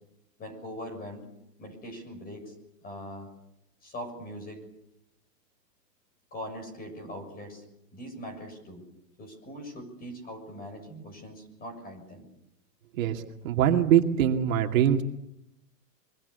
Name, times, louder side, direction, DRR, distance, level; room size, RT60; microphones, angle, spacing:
voice 1, 0.4-1.2 1.6-2.5 2.8-3.3 3.8-4.6 6.3-7.6 7.9-8.8 9.2-12.3, equal, 20° left, 7 dB, 6.8 m, -41 dB
voice 2, 13.0-15.0, right 10 dB, 55° right, 3 dB, 2.5 m, -23 dB
25.5 x 23.5 x 6.9 m, 0.84 s
hypercardioid pair, 155°, 49 cm